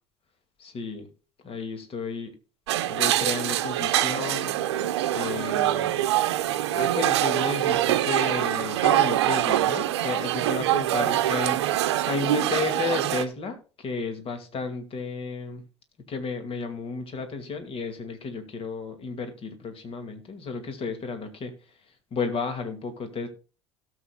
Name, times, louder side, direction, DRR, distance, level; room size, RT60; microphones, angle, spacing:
voice 1, 0.6-1.1 1.4-2.3 2.9-4.5 5.1-6.0 6.7-11.6 12.0-15.6 16.1-21.5 22.1-23.3, left 4 dB, 40° left, 7 dB, 2.3 m, -33 dB
sound 1, 2.7-13.2, right 13 dB, 75° right, 0.8 m, -24 dB
17.5 x 7.4 x 2.3 m, 0.34 s
hypercardioid pair, 65°, 14 cm